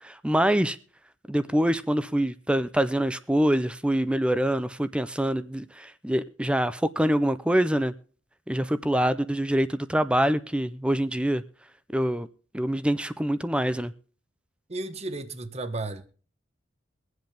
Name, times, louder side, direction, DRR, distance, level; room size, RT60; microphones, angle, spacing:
voice 1, 0.0-0.8 1.3-7.9 8.5-11.4 11.9-12.3 12.5-13.9, right 1 dB, 5° right, 0.5 m, -25 dB
voice 2, 14.7-16.0, right 2 dB, 35° right, 1.1 m, -33 dB
23.5 x 7.9 x 3.4 m
head